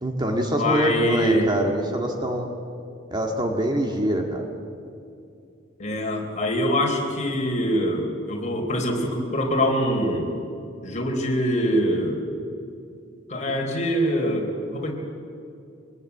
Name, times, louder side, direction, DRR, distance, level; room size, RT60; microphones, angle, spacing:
voice 1, 0.0-2.5 3.1-4.5, right 1 dB, 20° right, 2 dB, 2.0 m, -24 dB
voice 2, 0.6-1.5 5.8-10.3 10.8-12.2 13.3-14.9, equal, 35° left, 1 dB, 4.2 m, -24 dB
24.0 x 21.5 x 8.4 m, 2.5 s
head